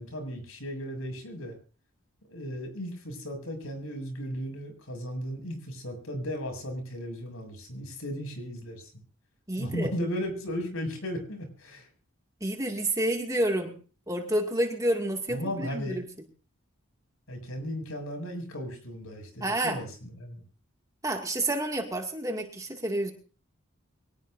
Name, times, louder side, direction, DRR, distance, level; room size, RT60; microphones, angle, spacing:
voice 1, 0.0-1.6 2.3-8.9 9.6-11.9 15.3-16.0 17.3-20.4, equal, 90° left, 5 dB, 7.2 m, -36 dB
voice 2, 9.5-9.9 12.4-13.8 14.1-16.0 19.4-19.8 21.0-23.1, right 1 dB, 15° right, 2 dB, 2.3 m, -29 dB
24.0 x 18.5 x 2.7 m, 0.38 s
head